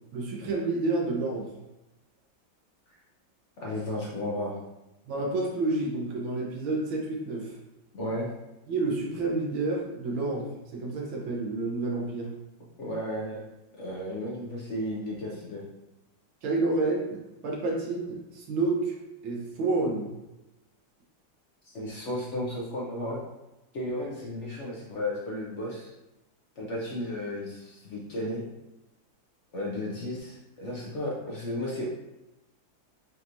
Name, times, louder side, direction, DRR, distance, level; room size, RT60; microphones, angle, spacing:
voice 1, 0.1-1.5 5.1-7.6 8.7-12.3 16.4-19.0 19.2-20.1, right 3 dB, 85° right, -2 dB, 1.7 m, -29 dB
voice 2, 3.6-4.6 7.9-8.3 12.8-13.4 13.7-15.6 21.6-23.2 23.7-25.9 26.6-28.4 29.5-31.9, left 1 dB, 60° left, -4 dB, 0.7 m, -34 dB
5.7 x 2.9 x 2.6 m, 0.97 s
omnidirectional pair, 2.1 m